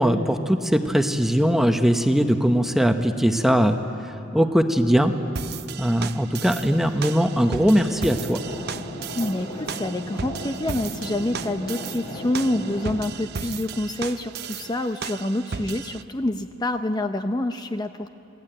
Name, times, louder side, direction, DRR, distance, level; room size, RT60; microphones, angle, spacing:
voice 1, 0.0-3.8 4.0-5.1 5.8-8.4, equal, ahead, 6 dB, 0.9 m, -20 dB
sound 1, 5.4-16.0, right 6 dB, 60° right, 0.6 m, -35 dB
sound 2, 7.9-12.9, equal, 60° left, 5.0 m, -36 dB
voice 2, 9.1-18.1, left 1 dB, 20° left, 7 dB, 0.6 m, -27 dB
28.5 x 19.0 x 9.0 m, 2.9 s
head